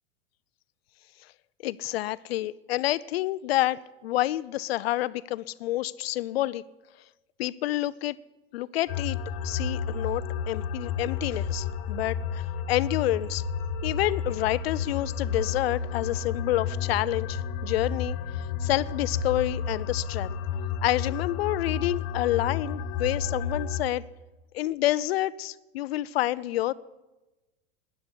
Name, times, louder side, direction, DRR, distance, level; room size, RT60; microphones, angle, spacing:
voice 1, 1.6-6.6 7.4-8.2 8.5-13.4 13.8-20.4 20.8-24.0 24.5-26.7, left 15 dB, 80° left, 18 dB, 0.6 m, -28 dB
sound 1, 8.9-23.8, left 6 dB, 50° left, 1.3 m, -31 dB
12.5 x 10.0 x 9.8 m, 1.1 s
supercardioid pair, 135°, 30 cm